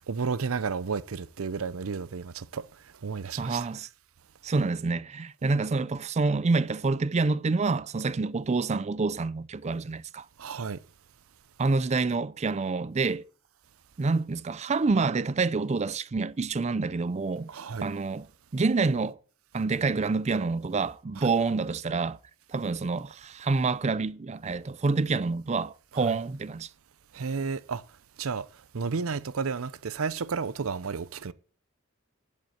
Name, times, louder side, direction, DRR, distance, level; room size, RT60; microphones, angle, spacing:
voice 1, 0.1-2.7 3.0-3.7 10.4-10.8 17.5-17.9 21.2-21.3 25.9-26.2 27.1-27.8 28.2-28.5 28.7-31.3, right 5 dB, 75° right, 0.6 m, -32 dB
voice 2, 3.4-3.9 4.4-10.3 11.6-13.2 14.0-17.5 17.8-18.2 18.5-19.2 19.5-22.2 22.5-26.7, right 3 dB, 30° right, 0.4 m, -27 dB
11.5 x 5.3 x 7.8 m
head